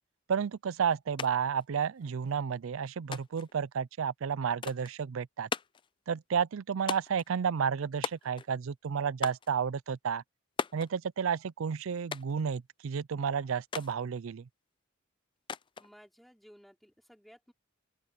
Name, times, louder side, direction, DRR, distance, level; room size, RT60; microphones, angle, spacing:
voice 1, 0.3-5.5 6.1-10.2 10.7-14.5, right 7 dB, 70° right, 0.4 m, -31 dB
sound 1, 1.2-1.3 1.6-2.3 3.1-3.5 4.6-4.9 5.5-5.9 6.9-7.3 8.0-8.6 9.2-9.5 10.6-10.9 12.1-12.4 13.7-13.9 15.5-15.9, left 5 dB, 25° left, 0.4 m, -37 dB
voice 2, 15.8-17.5, equal, ahead, 5.3 m, -57 dB
open air
head